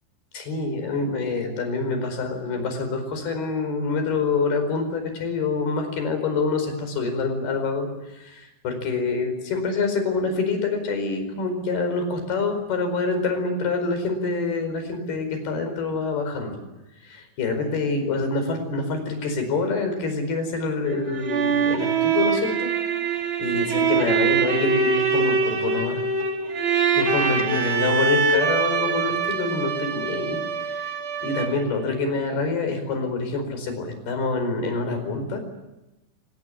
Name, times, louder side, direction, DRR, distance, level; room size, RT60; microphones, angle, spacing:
voice 1, 0.3-16.6 17.0-22.7 23.1-26.0 26.9-31.0 31.2-35.4, left 3 dB, 55° left, 7 dB, 6.6 m, -26 dB
sound 1, 20.9-31.8, right 5 dB, 35° right, 2.6 m, -23 dB
24.5 x 20.5 x 9.9 m, 1.0 s
omnidirectional pair, 5.5 m